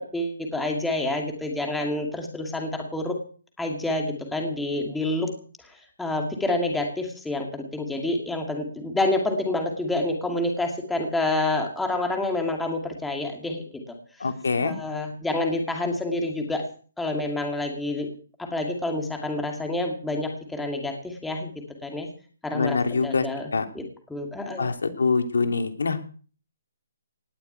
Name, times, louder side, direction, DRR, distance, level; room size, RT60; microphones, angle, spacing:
voice 1, 0.1-3.2 3.6-5.3 5.6-14.3 14.6-16.6 17.0-18.1 18.4-21.5 21.8-22.1 22.4-23.8 24.1-24.7, left 2 dB, 5° left, 2 dB, 2.4 m, -28 dB
voice 2, 14.2-14.7 22.5-23.2 23.5-23.6 24.6-26.1, left 4 dB, 90° left, 7 dB, 2.9 m, -24 dB
18.5 x 6.9 x 9.3 m, 0.41 s
hypercardioid pair, 170°, 0 cm